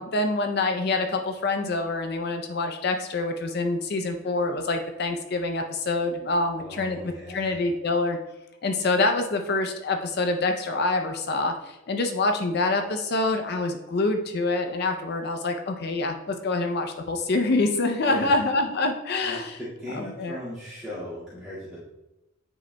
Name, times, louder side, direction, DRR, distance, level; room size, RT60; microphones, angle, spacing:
voice 1, 0.0-8.2 8.6-19.6 19.9-20.4, left 2 dB, 50° left, 5 dB, 0.5 m, -26 dB
voice 2, 6.6-7.6 18.0-18.3 19.2-21.9, equal, ahead, -13 dB, 1.9 m, -37 dB
9.4 x 5.1 x 2.2 m, 0.99 s
head